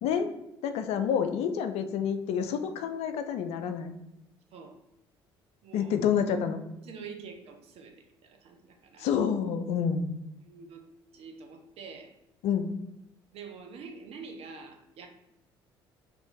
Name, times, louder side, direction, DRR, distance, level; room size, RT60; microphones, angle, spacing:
voice 1, 0.0-0.3 0.6-3.9 5.7-6.6 9.0-10.1 12.4-12.7, left 7 dB, 55° left, 8 dB, 0.4 m, -28 dB
voice 2, 5.6-5.9 6.8-9.1 10.4-10.8 11.1-12.1 13.3-15.1, right 5 dB, 50° right, 3 dB, 0.6 m, -46 dB
2.9 x 2.5 x 3.6 m, 0.89 s
figure-of-eight pair, 55°, 13 cm